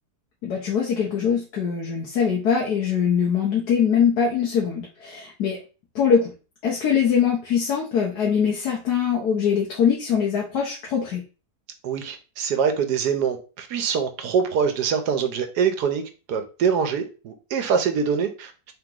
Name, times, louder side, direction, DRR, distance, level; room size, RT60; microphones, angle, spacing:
voice 1, 0.4-5.6 5.9-6.3 6.6-11.2, left 7 dB, 75° left, 1.4 m, -22 dB
voice 2, 11.8-16.0 16.3-18.7, right 6 dB, 75° right, 1.3 m, -24 dB
3.9 x 3.0 x 3.7 m
omnidirectional pair, 1.7 m